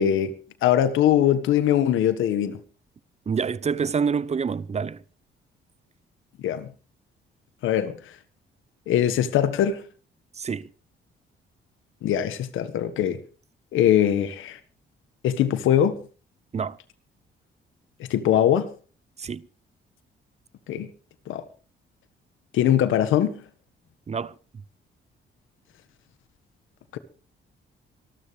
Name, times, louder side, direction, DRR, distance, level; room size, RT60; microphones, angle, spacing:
voice 1, 0.0-2.6 6.4-6.7 7.6-8.0 8.9-9.8 12.0-13.2 13.7-14.6 15.2-15.9 18.1-18.7 20.7-20.9 21.3-21.4 22.5-23.4 26.9-27.0, left 10 dB, 85° left, 1.7 m, -22 dB
voice 2, 3.3-5.0 10.4-10.7 16.5-16.8 19.2-19.5 24.1-24.3, right 6 dB, 35° right, 0.7 m, -27 dB
25.5 x 13.0 x 3.4 m
cardioid pair, 90°, 20 cm